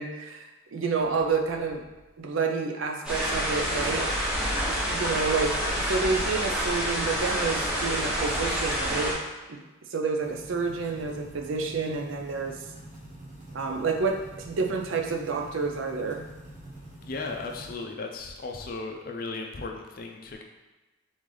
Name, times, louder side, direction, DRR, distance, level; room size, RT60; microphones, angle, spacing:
voice 1, 0.0-1.8 2.2-4.1 4.7-9.2 9.5-9.6 9.9-12.6 13.5-16.2, right 4 dB, 75° right, 3 dB, 0.5 m, -29 dB
sound 1, 3.0-9.1, equal, 5° right, 0.9 m, -28 dB
sound 2, 10.2-17.7, right 1 dB, 35° right, 1.4 m, -46 dB
voice 2, 17.0-20.4, left 3 dB, 45° left, 2 dB, 0.5 m, -36 dB
3.9 x 3.2 x 3.8 m, 1.1 s
head